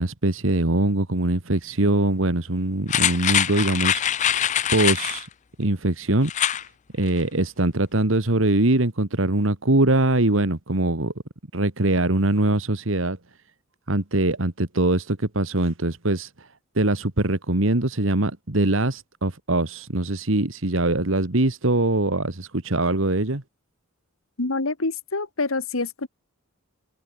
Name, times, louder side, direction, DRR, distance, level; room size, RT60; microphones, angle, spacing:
voice 1, 0.0-5.3 5.6-6.3 6.9-11.1 11.5-13.2 13.9-16.5 16.8-23.4, right 2 dB, 70° right, 2.0 m, -22 dB
sound 1, 2.9-5.2 6.2-6.6 7.0-7.1, left 10 dB, 35° left, 0.4 m, -23 dB
voice 2, 24.4-26.1, left 3 dB, 85° left, 1.9 m, -26 dB
head